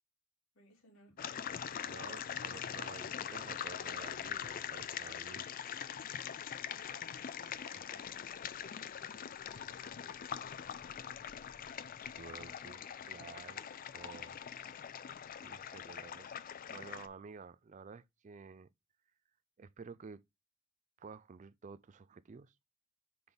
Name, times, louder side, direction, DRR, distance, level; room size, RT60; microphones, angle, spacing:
voice 1, 0.5-1.4 3.1-3.3 6.7-7.1 7.8-8.4 9.5-11.1, right 1 dB, 70° left, 3.4 m, -64 dB
sound 1, 1.2-17.1, left 8 dB, 40° left, 0.4 m, -43 dB
voice 2, 1.9-5.5 7.4-7.9 12.2-13.6 13.9-14.4 15.4-18.7 19.6-20.2 21.0-22.5, right 5 dB, 35° right, 0.4 m, -52 dB
5.9 x 3.8 x 5.2 m
head